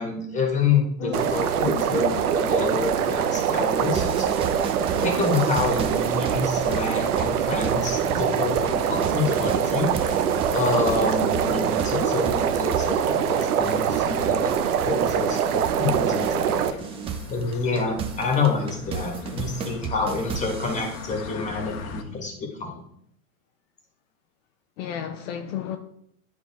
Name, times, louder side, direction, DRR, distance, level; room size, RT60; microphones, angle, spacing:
voice 1, 0.0-2.1 2.4-4.3 5.0-14.5 14.8-16.8 17.3-22.3 22.6-22.8, left 4 dB, 15° left, 2 dB, 1.7 m, -27 dB
sound 1, 1.1-16.7, right 8 dB, 85° right, 0.7 m, -24 dB
voice 2, 1.6-2.3 24.8-25.8, left 9 dB, 60° left, 6 dB, 0.7 m, -33 dB
sound 2, 3.8-16.5 16.8-21.2, right 6 dB, 15° right, 0.4 m, -35 dB
sound 3, 16.0-22.0, left 5 dB, 75° left, 1.2 m, -41 dB
10.0 x 3.8 x 3.6 m, 0.71 s
supercardioid pair, 130°, 43 cm